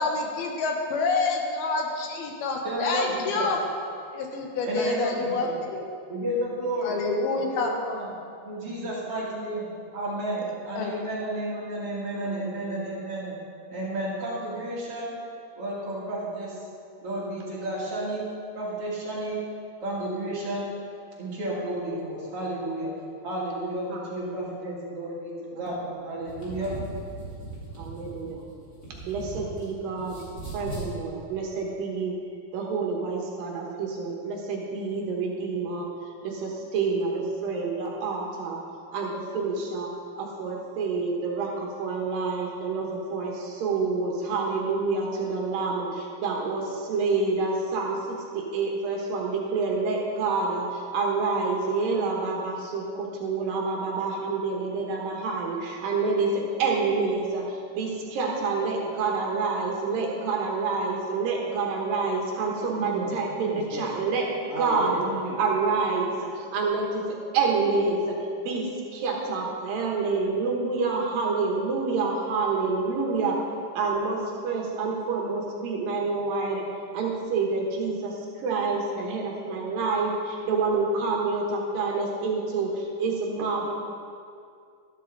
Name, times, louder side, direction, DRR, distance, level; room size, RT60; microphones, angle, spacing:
voice 1, 0.0-3.6 4.1-5.8 6.8-7.7 10.8-10.9, left 3 dB, 75° left, 2 dB, 2.9 m, -27 dB
voice 2, 2.6-3.5 4.6-5.5 6.1-6.9 7.3-8.1 8.4-9.7 9.9-13.4 13.7-15.1 15.6-16.6 17.0-18.3 18.5-19.4 19.8-20.7 21.2-22.9 23.2-25.8 26.0-26.7 62.7-63.1 63.4-63.8 64.5-65.4, right 1 dB, 40° right, -6 dB, 2.7 m, -32 dB
voice 3, 12.1-12.8 23.9-24.5 27.8-28.5 29.0-30.3 30.5-32.1 32.5-35.9 36.2-38.6 38.9-39.9 40.2-64.3 64.6-65.0 65.4-68.2 68.4-73.4 73.7-76.6 76.9-83.7, right 4 dB, 70° right, -1 dB, 2.8 m, -28 dB
sound 1, 26.1-29.7 30.0-30.9, right 2 dB, 20° left, 3.7 m, -38 dB
13.5 x 12.0 x 3.9 m, 2.4 s
omnidirectional pair, 4.6 m